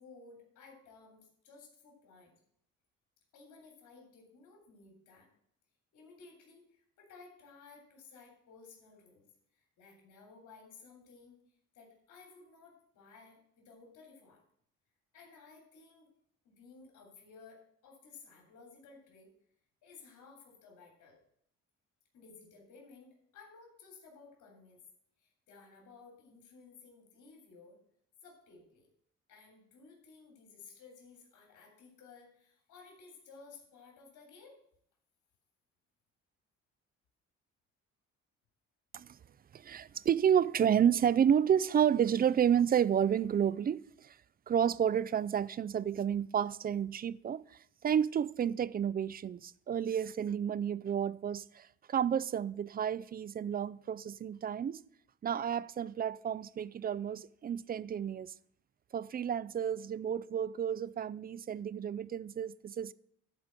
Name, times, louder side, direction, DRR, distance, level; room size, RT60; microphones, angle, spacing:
voice 1, 0.0-2.3 3.3-5.3 5.9-9.3 9.5-11.4 11.7-14.4 15.1-16.1 16.4-19.3 19.8-21.2 22.1-24.8 25.2-27.8 28.2-28.9 29.3-34.5, left 4 dB, 80° left, 3.2 m, -56 dB
voice 2, 39.5-44.2 44.5-54.8 55.2-58.3 58.9-62.9, right 8 dB, 30° right, 0.4 m, -31 dB
11.5 x 5.0 x 7.5 m
cardioid pair, 90°, 30 cm